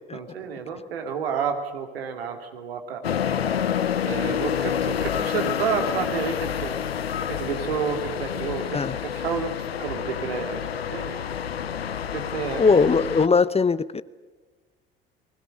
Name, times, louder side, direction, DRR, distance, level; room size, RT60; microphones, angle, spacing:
voice 1, 0.1-3.0 4.0-6.7 7.3-11.2 12.1-12.7, right 6 dB, 80° right, 5 dB, 2.7 m, -30 dB
sound 1, 3.0-13.3, left 8 dB, 90° left, 0.7 m, -28 dB
voice 2, 12.6-14.0, left 4 dB, 20° left, 17 dB, 0.9 m, -20 dB
30.0 x 20.5 x 6.5 m, 1.3 s
figure-of-eight pair, 60°, 30 cm